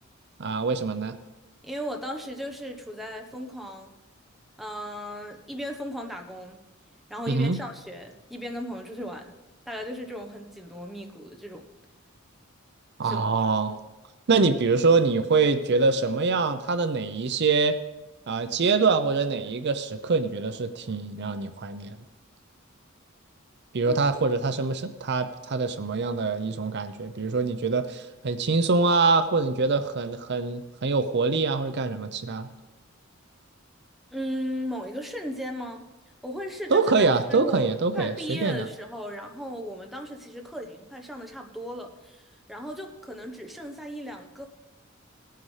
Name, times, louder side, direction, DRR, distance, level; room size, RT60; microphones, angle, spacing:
voice 1, 0.4-1.2 7.3-7.6 13.0-13.8 14.3-17.8 18.3-22.0 23.7-32.5 36.7-38.6, right 4 dB, 55° right, 10 dB, 0.6 m, -24 dB
voice 2, 1.6-4.0 4.6-6.6 7.1-9.3 9.7-11.7 13.0-13.2 23.9-24.3 34.1-35.9 36.2-44.5, equal, ahead, 3 dB, 1.0 m, -36 dB
18.0 x 9.3 x 3.3 m, 1.1 s
head